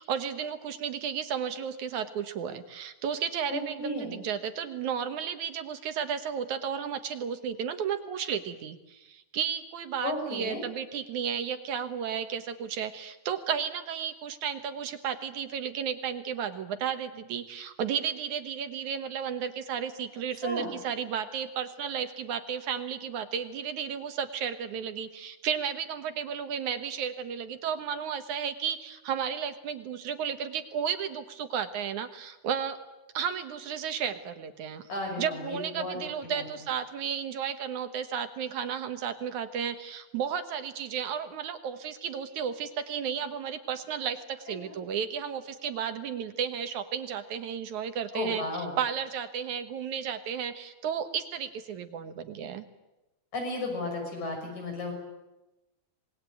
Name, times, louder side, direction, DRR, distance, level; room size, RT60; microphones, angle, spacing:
voice 1, 0.0-32.8 33.1-34.9 35.2-48.4 48.8-52.6, right 7 dB, 70° right, 9 dB, 2.6 m, -33 dB
voice 2, 3.5-4.2 10.0-10.6 20.4-20.7 34.9-36.0 36.3-36.5 44.7-44.8 48.1-48.8 53.3-54.9, left 2 dB, 65° left, 2 dB, 7.8 m, -34 dB
26.0 x 20.5 x 9.2 m, 0.99 s
omnidirectional pair, 3.7 m